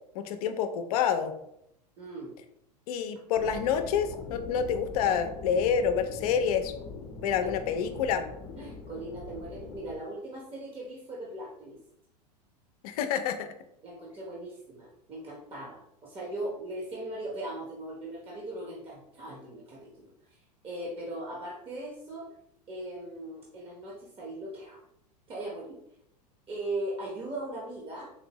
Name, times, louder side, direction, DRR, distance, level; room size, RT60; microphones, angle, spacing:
voice 1, 0.1-1.3 2.9-6.7 7.2-8.2 12.8-13.5, left 7 dB, 65° left, 8 dB, 0.5 m, -28 dB
voice 2, 2.0-2.3 7.4-7.5 8.5-11.8 13.8-20.4 20.6-22.3 22.7-24.8 25.3-25.8 26.5-28.1, right 1 dB, 25° right, -3 dB, 0.9 m, -39 dB
sound 1, 3.3-10.0, left 4 dB, 30° left, 0.8 m, -42 dB
4.2 x 2.5 x 2.9 m, 0.77 s
hypercardioid pair, 100°, 21 cm